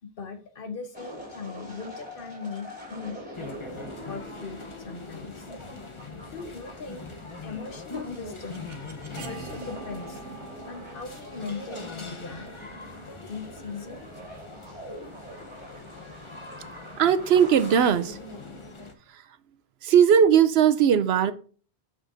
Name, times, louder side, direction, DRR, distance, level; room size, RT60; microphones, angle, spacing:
voice 1, 0.0-3.2 3.7-5.5 6.3-7.1 7.4-8.7 9.2-10.2 10.6-12.5 13.0-14.1, left 4 dB, 55° left, 1.0 m, -39 dB
sound 1, 0.9-17.9, equal, 10° right, 3.2 m, -45 dB
sound 2, 3.3-18.9, left 3 dB, 30° left, 0.9 m, -42 dB
sound 3, 7.7-13.6, right 4 dB, 85° right, 1.3 m, -46 dB
voice 2, 17.0-18.2 19.1-19.2 19.8-21.3, right 8 dB, 70° right, 0.8 m, -19 dB
8.7 x 6.1 x 2.6 m
omnidirectional pair, 1.1 m